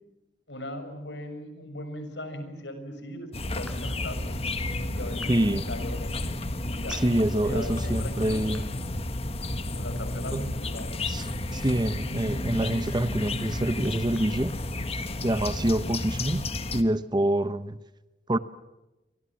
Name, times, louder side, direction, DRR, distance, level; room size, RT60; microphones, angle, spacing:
voice 1, 0.5-4.3 4.9-6.1 6.7-8.6 9.7-10.9, left 1 dB, 80° left, 6.5 m, -39 dB
sound 1, 3.3-16.8, left 2 dB, 35° left, 1.7 m, -32 dB
sound 2, 3.7-3.8 5.2-5.4 6.9-7.1 7.6-7.7 8.5-8.7 9.2-9.3 9.9-10.1 10.4-10.5 10.8-10.9 11.2-11.3 11.6-12.1 12.4-12.5 12.9-15.2 15.5-15.6 16.0-16.2, left 1 dB, 5° left, 4.7 m, -52 dB
voice 2, 5.3-5.6 6.9-8.6 10.2-10.5 11.1-14.6 15.2-17.8 18.3-18.4, right 1 dB, 25° right, 1.0 m, -26 dB
29.5 x 24.5 x 7.4 m
head